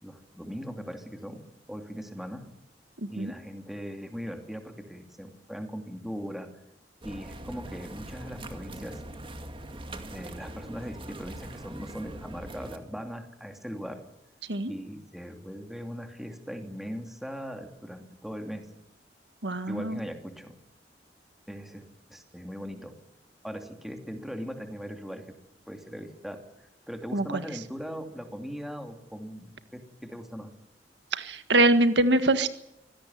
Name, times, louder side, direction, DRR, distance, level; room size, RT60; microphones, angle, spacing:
voice 1, 0.0-1.4 1.7-2.5 3.1-6.5 7.0-9.0 10.1-14.0 14.7-18.7 19.7-20.6 21.5-21.8 22.1-22.9 23.4-25.2 25.7-26.4 26.9-30.5, equal, ahead, 5 dB, 2.8 m, -39 dB
voice 2, 3.0-3.3 14.5-14.7 19.4-20.0 27.1-27.4 31.1-32.5, right 2 dB, 80° right, 10 dB, 1.7 m, -24 dB
sound 1, 7.0-12.8, right 1 dB, 30° right, 2.2 m, -42 dB
25.5 x 17.5 x 9.5 m, 0.81 s
head